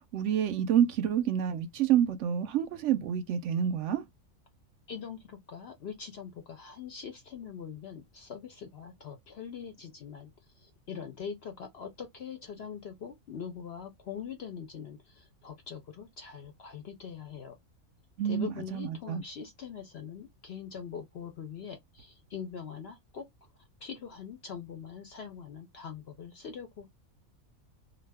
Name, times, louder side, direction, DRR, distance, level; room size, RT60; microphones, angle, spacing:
voice 1, 0.1-4.0 18.2-19.2, right 9 dB, 65° right, 0.8 m, -28 dB
voice 2, 4.9-17.6 18.2-23.3 23.8-26.9, left 7 dB, 60° left, 0.7 m, -43 dB
2.4 x 2.2 x 3.3 m
omnidirectional pair, 1.5 m